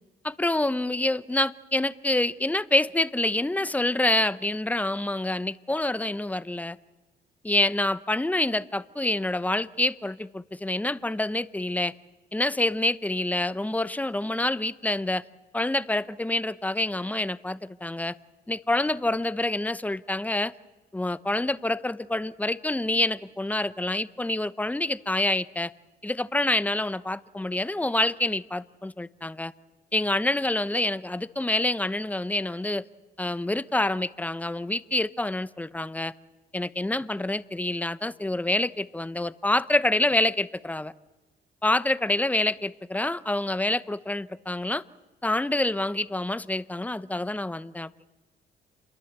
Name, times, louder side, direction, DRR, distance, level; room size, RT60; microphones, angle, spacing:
voice 1, 0.2-6.8 7.4-11.9 12.3-15.2 15.5-18.1 18.5-20.5 20.9-25.7 26.0-29.5 29.9-32.8 33.2-36.1 36.5-40.9 41.6-44.8 45.2-47.9, left 2 dB, 5° left, 16 dB, 0.8 m, -27 dB
28.5 x 22.5 x 8.1 m, 1.2 s
cardioid pair, 90°, 20 cm